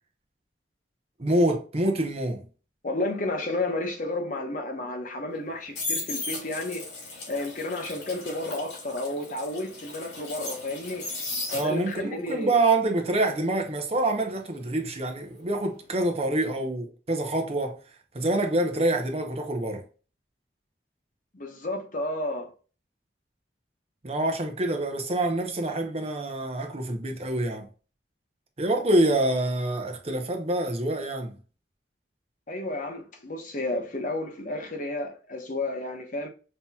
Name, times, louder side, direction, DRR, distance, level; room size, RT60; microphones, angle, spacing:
voice 1, 1.2-2.4 11.5-17.8 18.1-19.8 24.0-27.7 28.6-31.3, right 2 dB, 35° right, 0.7 m, -26 dB
voice 2, 2.8-6.9 7.3-11.0 11.5-12.6 21.3-22.5 32.5-36.3, left 2 dB, 45° left, 0.9 m, -32 dB
sound 1, 5.3-12.1 12.4-15.3 15.6-15.9, left 3 dB, 65° left, 2.2 m, -36 dB
5.6 x 2.9 x 2.3 m
head